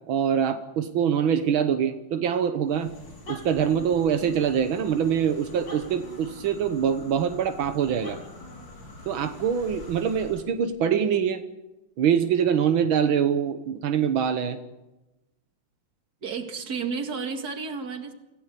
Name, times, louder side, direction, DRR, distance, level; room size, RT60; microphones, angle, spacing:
voice 1, 0.1-2.9 3.3-8.2 9.1-11.4 12.0-14.6, right 8 dB, 85° right, 9 dB, 1.9 m, -24 dB
sound 1, 2.7-10.5, left 2 dB, 65° left, 5.0 m, -44 dB
voice 2, 16.2-18.1, right 5 dB, 50° right, 6 dB, 2.6 m, -32 dB
26.5 x 16.5 x 8.4 m, 1.0 s
omnidirectional pair, 2.2 m